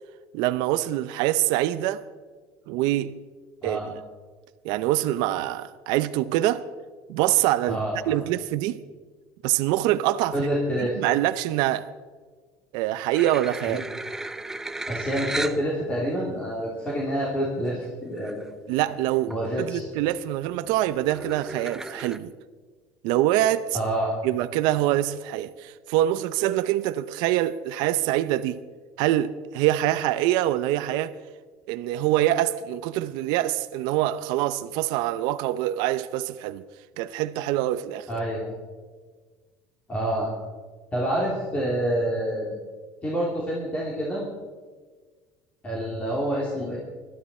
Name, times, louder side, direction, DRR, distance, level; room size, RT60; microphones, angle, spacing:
voice 1, 0.3-2.0 2.7-3.2 3.6-4.0 4.6-6.7 7.1-8.8 9.4-10.5 10.8-11.9 12.7-13.8 18.7-22.3 23.0-23.8 24.2-28.6 29.0-31.2 31.7-36.6 37.0-38.1, right 14 dB, 70° right, 0.6 m, -25 dB
voice 2, 7.7-8.2 10.3-11.0 13.7-13.8 14.9-18.5 18.8-18.9 19.3-19.8 23.7-24.1 38.1-38.6 39.9-40.3 40.9-42.5 43.0-44.2 45.6-46.8, equal, 15° left, 2.9 m, -27 dB
sound 1, 13.1-15.6 16.3-16.4 17.8-17.9 18.2-18.6 19.0-19.5 19.9-22.2, right 2 dB, 5° right, 0.4 m, -35 dB
21.0 x 12.5 x 4.3 m
cardioid pair, 160°, 8 cm